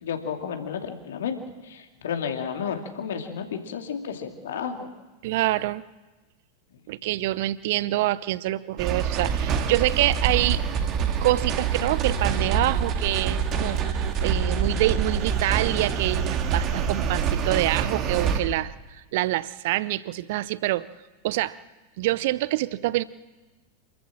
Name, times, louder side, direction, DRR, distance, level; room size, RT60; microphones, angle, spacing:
voice 1, 0.0-4.9, left 7 dB, 60° left, 5 dB, 2.6 m, -32 dB
voice 2, 5.2-5.8 6.9-10.6 11.2-20.9 21.2-21.6 22.0-23.0, right 16 dB, 50° right, 19 dB, 0.7 m, -26 dB
sound 1, 8.8-18.4, right 7 dB, 35° right, 1.9 m, -26 dB
27.0 x 14.0 x 7.4 m, 1.2 s
figure-of-eight pair, 90°, 0 cm